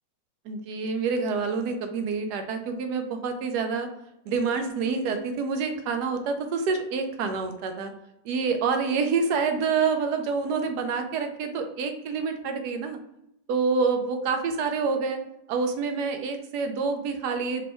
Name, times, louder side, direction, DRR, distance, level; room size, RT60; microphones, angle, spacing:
voice 1, 0.5-3.9 4.3-7.9 8.2-13.0 13.5-15.2 15.5-17.6, right 5 dB, 70° right, 5 dB, 1.1 m, -27 dB
5.4 x 2.2 x 4.2 m, 0.83 s
omnidirectional pair, 2.0 m